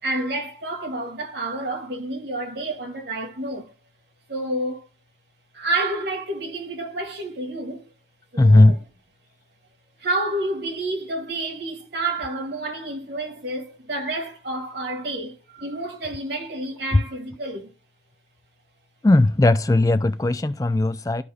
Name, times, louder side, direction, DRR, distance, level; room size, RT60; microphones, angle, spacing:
voice 1, 0.0-3.7 4.3-4.9 5.5-7.9 8.3-8.8 10.0-17.7, right 2 dB, 70° right, 2.0 m, -29 dB
voice 2, 8.4-8.8 19.0-21.2, left 2 dB, 20° left, 0.3 m, -17 dB
12.5 x 5.0 x 2.3 m
head